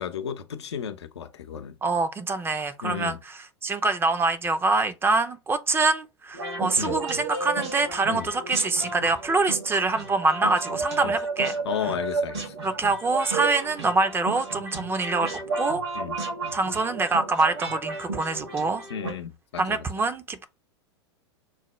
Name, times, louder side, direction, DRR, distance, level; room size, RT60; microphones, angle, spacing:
voice 1, 0.0-1.8 2.8-3.2 6.8-7.0 8.1-8.3 11.0-11.1 11.6-12.5 15.9-16.2 18.9-19.9, left 8 dB, 80° left, 0.7 m, -33 dB
voice 2, 1.8-3.1 3.6-11.5 12.6-15.8 16.5-18.8 19.6-20.4, right 3 dB, 15° right, 0.5 m, -25 dB
sound 1, 6.3-19.1, right 3 dB, 75° right, 2.0 m, -32 dB
6.1 x 2.1 x 3.1 m
hypercardioid pair, 95°, 14 cm